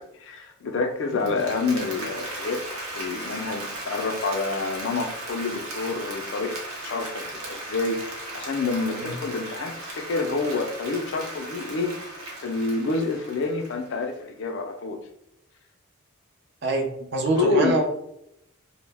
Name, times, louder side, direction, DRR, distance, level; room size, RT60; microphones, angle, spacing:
voice 1, 0.0-2.6 3.0-15.0 17.4-17.8, left 3 dB, 55° left, 5 dB, 0.4 m, -28 dB
Applause, 1.1-14.1, right 1 dB, 85° right, 0.8 m, -37 dB
voice 2, 16.6-17.8, right 2 dB, 50° right, 3 dB, 0.4 m, -25 dB
2.1 x 2.0 x 3.2 m, 0.78 s
head